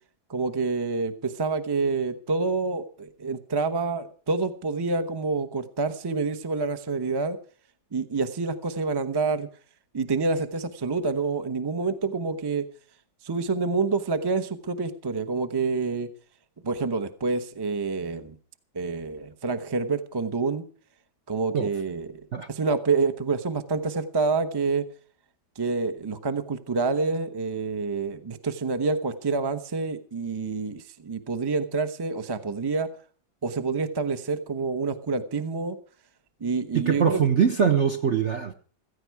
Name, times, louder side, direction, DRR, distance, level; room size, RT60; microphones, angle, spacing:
voice 1, 0.3-7.4 7.9-9.5 9.9-12.7 13.2-16.1 16.6-18.4 18.7-20.6 21.3-24.9 25.6-32.9 33.4-35.8 36.4-37.2, right 4 dB, 20° right, 0.7 m, -27 dB
voice 2, 36.7-38.5, right 7 dB, 50° right, 0.9 m, -22 dB
16.0 x 14.5 x 4.8 m
omnidirectional pair, 2.1 m